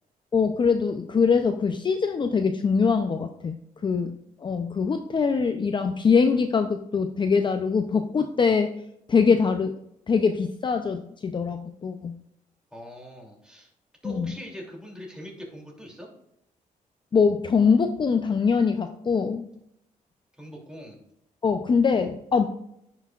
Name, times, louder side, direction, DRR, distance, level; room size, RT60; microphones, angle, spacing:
voice 1, 0.3-4.1 4.4-8.7 9.1-9.7 10.1-12.2 14.0-14.3 17.1-19.5 21.4-22.4, left 5 dB, 35° left, 7 dB, 0.5 m, -23 dB
voice 2, 12.7-13.7 14.0-16.1 20.4-21.0, equal, 5° right, -1 dB, 2.7 m, -42 dB
10.0 x 5.9 x 2.4 m, 0.76 s
cardioid pair, 100°, 14 cm